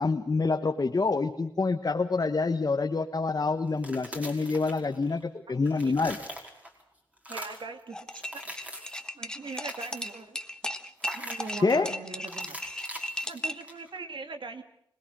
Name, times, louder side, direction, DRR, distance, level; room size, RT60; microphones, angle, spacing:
voice 1, 0.0-6.2 11.6-11.9, left 3 dB, 50° left, 5 dB, 1.3 m, -27 dB
sound 1, 3.7-5.2 5.5-6.8 7.2-7.7 8.1-9.1 9.4-10.2 11.0-11.8 12.3-14.0, equal, 15° right, 5.0 m, -42 dB
voice 2, 7.3-8.4 9.1-10.4 11.1-12.6 13.2-14.6, right 4 dB, 80° right, 7 dB, 2.4 m, -41 dB
sound 2, 7.9-13.7, equal, 10° left, 1.4 m, -36 dB
25.5 x 20.0 x 6.4 m, 0.73 s
wide cardioid pair, 80°, 8 cm